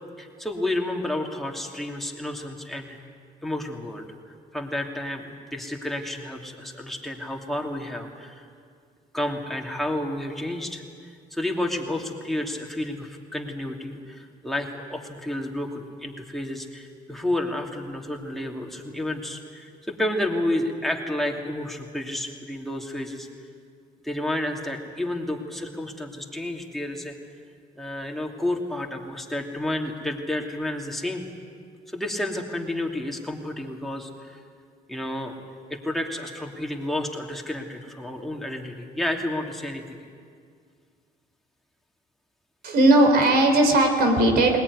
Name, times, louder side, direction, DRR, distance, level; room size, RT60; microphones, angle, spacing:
voice 1, 0.2-3.0 3.4-4.1 4.5-8.4 9.1-23.3 24.0-27.2 27.8-31.3 31.9-34.4 34.9-35.4 35.7-40.0, left 1 dB, ahead, 0 dB, 2.8 m, -31 dB
voice 2, 42.6-44.6, right 1 dB, 65° right, 4 dB, 3.7 m, -18 dB
20.5 x 20.0 x 9.8 m, 2.2 s
cardioid pair, 110°, 17 cm